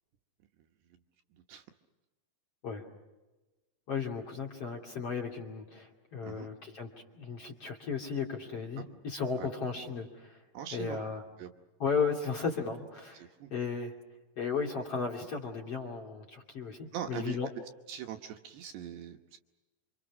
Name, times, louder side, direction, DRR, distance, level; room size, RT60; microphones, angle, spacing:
voice 1, 1.3-1.7 6.2-6.5 8.8-8.9 9.4-9.5 10.5-11.0 11.4-11.5 13.1-13.5 16.9-17.4 17.9-19.4, right 9 dB, 70° right, 4 dB, 2.9 m, -41 dB
voice 2, 3.9-10.4 10.7-11.2 11.8-13.2 13.5-13.9 14.4-17.5, left 5 dB, 35° left, 0 dB, 2.9 m, -35 dB
29.0 x 26.5 x 6.1 m, 1.1 s
omnidirectional pair, 5.7 m